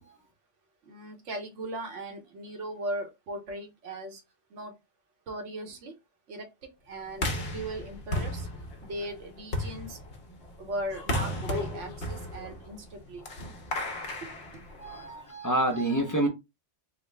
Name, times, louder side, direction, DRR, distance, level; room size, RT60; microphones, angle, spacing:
voice 1, 0.8-4.2 4.5-4.8 5.3-5.9 6.3-6.5 6.8-8.5 8.8-10.0 10.6-13.2 14.2-14.3, right 1 dB, 85° right, 1.2 m, -38 dB
sound 1, 7.1-15.2, left 1 dB, 60° left, 1.1 m, -35 dB
voice 2, 14.8-16.3, right 1 dB, 20° left, 0.5 m, -27 dB
3.9 x 2.1 x 3.3 m
omnidirectional pair, 1.2 m